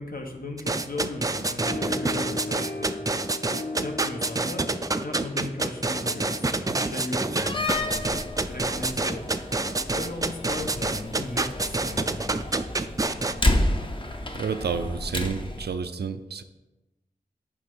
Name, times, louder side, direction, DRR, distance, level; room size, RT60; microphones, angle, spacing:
voice 1, 0.0-3.0 3.8-4.7 5.0-9.2 9.9-12.4, left 2 dB, 60° left, 3 dB, 1.1 m, -37 dB
sound 1, 0.6-13.3, right 3 dB, 20° right, 0.3 m, -27 dB
sound 2, 1.6-8.5, left 2 dB, 85° left, 1.2 m, -38 dB
Slam, 7.3-15.7, left 1 dB, 30° left, 0.7 m, -31 dB
voice 2, 14.3-16.4, right 5 dB, 85° right, 10 dB, 0.5 m, -30 dB
8.5 x 3.4 x 5.4 m, 1.0 s
wide cardioid pair, 85°, 17 cm